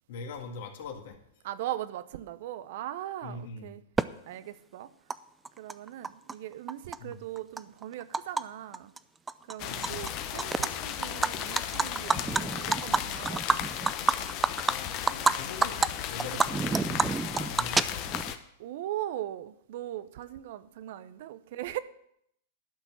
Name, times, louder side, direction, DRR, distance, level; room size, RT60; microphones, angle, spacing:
voice 1, 0.1-1.2 3.2-3.7 7.0-7.2 9.7-10.0 14.7-18.3, left 4 dB, 65° left, 2.1 m, -42 dB
voice 2, 1.4-3.8 4.3-4.9 5.6-8.9 9.5-13.6 18.6-21.8, right 13 dB, 60° right, 0.7 m, -39 dB
Animal, 4.0-4.1 5.1-5.2 5.4-6.3 6.7-8.4 8.7-9.0 9.3-10.1 10.4-10.7 11.0-15.3 15.6-15.9 16.2-18.3, right 4 dB, 15° right, 0.4 m, -27 dB
sound 1, 9.6-18.4, left 11 dB, 45° left, 0.9 m, -36 dB
12.0 x 6.0 x 7.3 m
hypercardioid pair, 105°, 0 cm